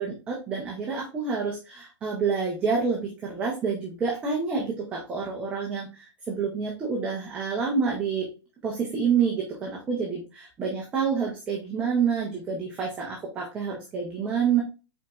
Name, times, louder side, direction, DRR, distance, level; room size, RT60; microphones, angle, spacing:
voice 1, 0.0-8.3 8.6-14.6, right 6 dB, 10° right, -2 dB, 0.5 m, -28 dB
5.1 x 4.1 x 2.3 m, 0.31 s
hypercardioid pair, 175°, 16 cm